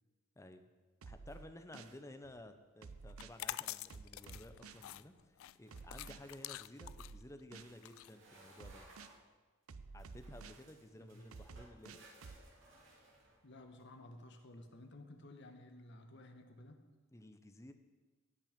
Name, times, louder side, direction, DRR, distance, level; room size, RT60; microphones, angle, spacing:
voice 1, 0.4-0.7 1.0-8.9 9.9-12.0 17.1-17.7, left 1 dB, 15° left, 7 dB, 0.7 m, -54 dB
sound 1, 1.0-2.0 2.8-3.4 3.9-4.9 5.7-6.2 6.8-7.8 8.6-9.2 9.7-10.6 11.3-12.4, right 4 dB, 85° right, 0.6 m, -52 dB
sound 2, 1.3-1.7 2.1-2.5 5.6-6.9 7.6-9.3 10.0-13.8, right 2 dB, 65° right, 2.5 m, -63 dB
sound 3, 3.1-8.8, left 13 dB, 75° left, 0.3 m, -47 dB
voice 2, 11.0-11.3 13.4-16.8, left 1 dB, 55° left, 5 dB, 1.2 m, -55 dB
17.5 x 6.1 x 5.2 m, 1.3 s
head